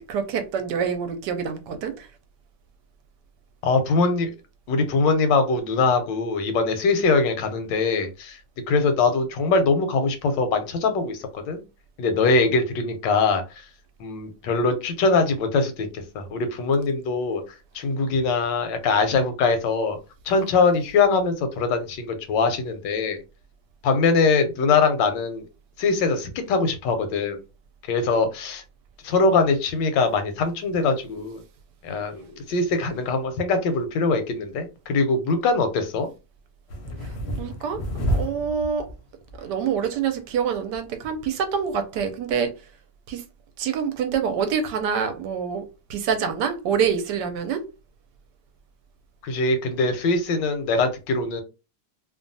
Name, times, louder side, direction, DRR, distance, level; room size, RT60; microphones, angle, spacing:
voice 1, 0.0-2.1 37.0-37.8 38.1-38.9 39.4-42.5 43.1-43.2 43.6-45.6 45.9-47.6, right 7 dB, 75° right, 1.1 m, -26 dB
voice 2, 3.6-4.3 4.7-8.4 8.7-11.6 12.0-13.6 14.0-15.9 16.1-17.4 17.7-20.0 20.3-23.2 23.8-25.4 25.8-27.4 27.9-28.6 29.0-31.4 31.8-36.1 49.2-51.4, left 4 dB, 80° left, 1.3 m, -22 dB
sound 1, 36.7-39.0 39.3-39.8 40.2-40.3 40.5-41.2 41.6-41.7, equal, 55° left, 0.7 m, -29 dB
2.9 x 2.2 x 2.6 m
omnidirectional pair, 2.0 m